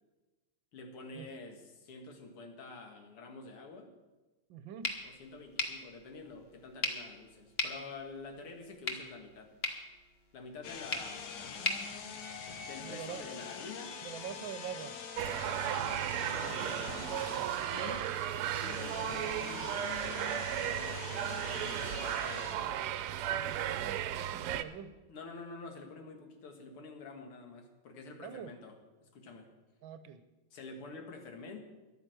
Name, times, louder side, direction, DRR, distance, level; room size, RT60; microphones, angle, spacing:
voice 1, 0.7-3.9 5.0-9.5 10.3-12.3 12.7-14.0 15.2-17.1 17.7-18.1 18.6-22.9 25.1-28.8 29.0-29.5 30.5-31.6, left 3 dB, 85° left, 4 dB, 2.5 m, -48 dB
voice 2, 4.5-4.9 12.8-13.3 14.0-15.0 23.2-24.9 28.2-28.5 29.8-30.2, right 9 dB, 70° right, 12 dB, 1.4 m, -44 dB
sound 1, 4.8-12.9, left 2 dB, 35° left, 1.1 m, -40 dB
sound 2, 10.6-22.6, left 7 dB, 65° left, 1.7 m, -44 dB
sound 3, 15.2-24.6, right 11 dB, 90° right, 1.6 m, -35 dB
11.5 x 9.2 x 7.7 m, 1.2 s
omnidirectional pair, 2.4 m